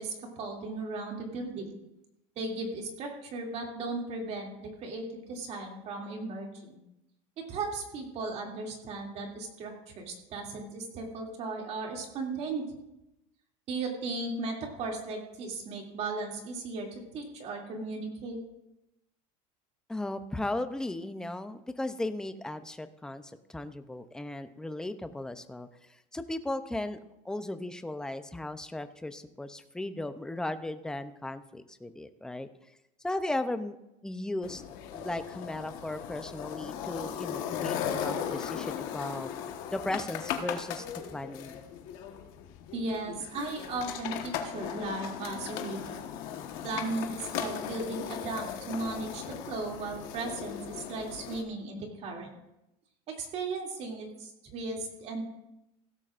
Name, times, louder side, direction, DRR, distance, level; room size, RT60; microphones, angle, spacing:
voice 1, 0.0-1.7 2.4-6.8 7.4-12.6 13.7-18.4 42.7-46.0 46.6-52.3 53.1-55.2, right 3 dB, 40° right, 0 dB, 2.6 m, -36 dB
voice 2, 19.9-27.0 27.2-32.5 33.0-33.8 34.0-34.6 34.9-39.3 39.7-40.9 41.1-41.6, left 2 dB, 5° left, 10 dB, 0.5 m, -36 dB
sound 1, 34.4-51.4, left 9 dB, 60° left, 1.3 m, -37 dB
16.5 x 13.0 x 2.5 m, 0.89 s
cardioid pair, 155°, 17 cm